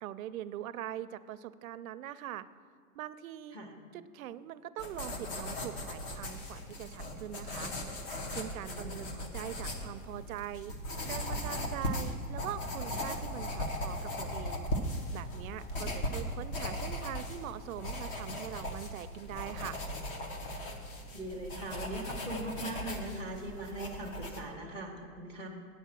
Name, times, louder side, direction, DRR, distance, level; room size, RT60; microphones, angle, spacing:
voice 1, 0.0-2.5 2.9-3.6 3.9-7.7 8.3-10.7 11.0-14.7 15.1-19.8, right 11 dB, 65° right, 15 dB, 0.5 m, -42 dB
sound 1, 4.8-24.4, left 1 dB, 35° left, 1.0 m, -38 dB
voice 2, 8.6-9.1 21.1-25.5, right 1 dB, 10° left, 0 dB, 0.8 m, -40 dB
8.8 x 5.5 x 7.4 m, 2.1 s
hypercardioid pair, 165°, 46 cm